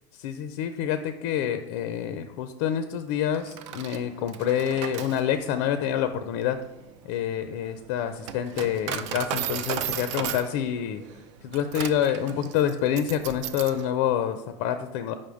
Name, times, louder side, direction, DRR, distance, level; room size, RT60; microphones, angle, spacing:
voice 1, 0.1-6.6 7.0-11.0 11.4-15.1, left 9 dB, 70° left, 9 dB, 0.4 m, -27 dB
Coin (dropping), 3.3-13.8, right 9 dB, 85° right, 0.4 m, -35 dB
5.3 x 3.5 x 5.1 m, 0.97 s
supercardioid pair, 130°, 15 cm